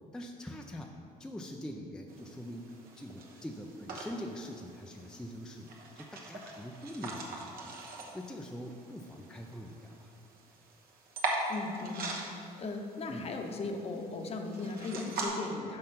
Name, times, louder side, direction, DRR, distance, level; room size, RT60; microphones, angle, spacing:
voice 1, 0.1-10.1 13.1-13.3, equal, 5° left, 2 dB, 0.4 m, -44 dB
sound 1, 2.1-15.3, right 3 dB, 60° right, 1.1 m, -42 dB
voice 2, 11.5-12.2 12.6-15.8, left 3 dB, 35° left, 3 dB, 0.8 m, -37 dB
5.6 x 5.4 x 5.7 m, 2.5 s
cardioid pair, 110°, 17 cm